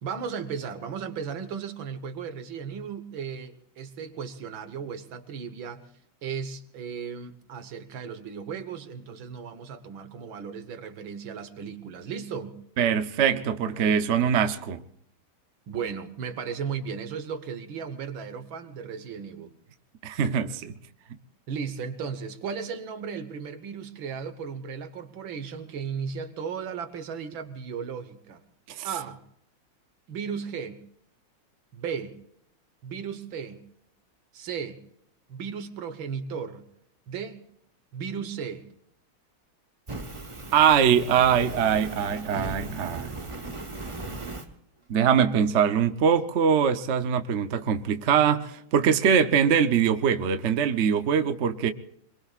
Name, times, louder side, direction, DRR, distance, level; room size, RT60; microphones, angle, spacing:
voice 1, 0.0-5.8 6.2-12.6 15.7-19.5 21.5-28.4 28.8-29.2 30.1-30.8 31.7-32.2 32.8-33.6 34.3-34.8 35.3-36.6 37.1-37.4 37.9-38.7, right 6 dB, 70° right, 2.0 m, -35 dB
voice 2, 12.8-14.8 20.0-20.7 28.8-28.9 40.5-43.2 44.9-51.7, right 7 dB, 55° right, 0.8 m, -23 dB
Fire, 39.9-44.5, right 2 dB, 20° right, 0.9 m, -37 dB
26.5 x 22.0 x 2.4 m
omnidirectional pair, 2.2 m